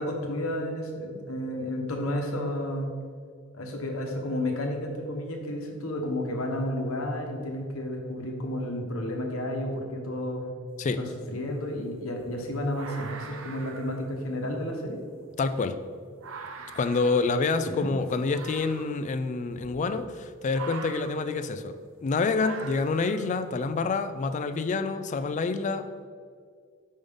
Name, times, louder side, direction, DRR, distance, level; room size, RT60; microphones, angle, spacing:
voice 1, 0.0-2.9 3.5-10.5 11.0-15.0 17.8-17.9, left 1 dB, 85° left, 2 dB, 1.0 m, -31 dB
sound 1, 10.7-10.8 11.2-23.8, right 5 dB, 75° right, 0.6 m, -45 dB
voice 2, 15.4-15.8 16.7-21.8 22.0-26.1, left 4 dB, 35° left, 10 dB, 0.3 m, -27 dB
5.3 x 5.3 x 3.5 m, 2.1 s
head